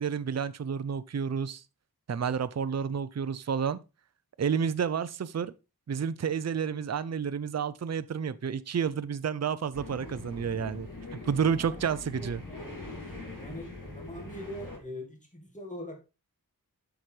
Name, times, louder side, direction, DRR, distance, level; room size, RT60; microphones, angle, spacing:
voice 1, 0.0-1.6 2.1-3.8 4.4-5.5 5.9-10.9 11.2-12.4, right 7 dB, 45° right, 0.5 m, -30 dB
sound 1, 9.7-14.8, left 2 dB, 55° left, 2.8 m, -42 dB
voice 2, 12.2-12.6 13.3-16.0, equal, 20° left, 1.9 m, -42 dB
7.8 x 5.9 x 3.2 m
wide cardioid pair, 55°, 38 cm